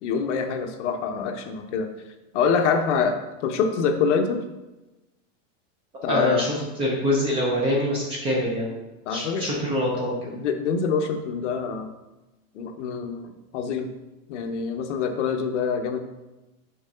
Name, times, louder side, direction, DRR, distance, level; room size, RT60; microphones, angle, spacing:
voice 1, 0.0-1.9 2.3-4.4 6.0-6.6 9.1-9.7 10.3-11.9 12.5-13.9 14.3-16.0, left 5 dB, 60° left, 5 dB, 0.8 m, -25 dB
voice 2, 6.1-8.8 9.1-10.3, left 1 dB, 15° right, -2 dB, 0.4 m, -25 dB
5.9 x 3.7 x 5.4 m, 1.1 s
supercardioid pair, 175°, 40 cm